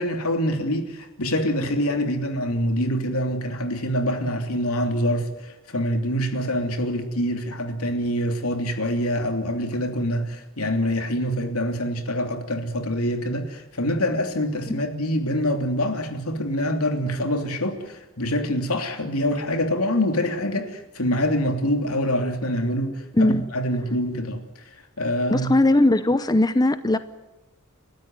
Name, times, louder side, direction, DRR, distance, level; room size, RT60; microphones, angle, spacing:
voice 1, 0.0-24.4 25.0-25.5, equal, 80° left, 6 dB, 3.0 m, -25 dB
voice 2, 23.1-23.4 25.3-27.0, left 1 dB, 20° left, 12 dB, 0.7 m, -19 dB
30.0 x 13.5 x 9.4 m, 0.98 s
head